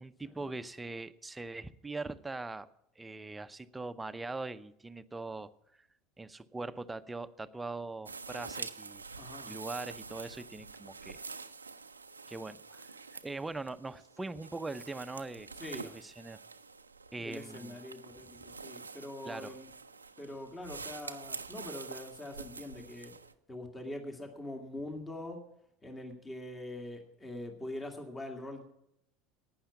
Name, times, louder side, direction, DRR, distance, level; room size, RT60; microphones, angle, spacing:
voice 1, 0.0-2.7 3.0-5.5 6.2-9.0 9.5-11.2 12.3-12.9 13.2-15.5 15.7-16.4 17.1-17.8 19.2-19.5, right 3 dB, 15° right, 11 dB, 0.7 m, -41 dB
sound 1, 8.0-23.3, right 4 dB, 90° right, 0.5 m, -46 dB
voice 2, 9.2-9.5 15.6-15.9 17.2-19.7 20.2-23.1 23.5-25.4 25.8-28.6, left 1 dB, 20° left, 3 dB, 2.0 m, -43 dB
11.5 x 9.5 x 8.1 m, 0.80 s
figure-of-eight pair, 70°, 0 cm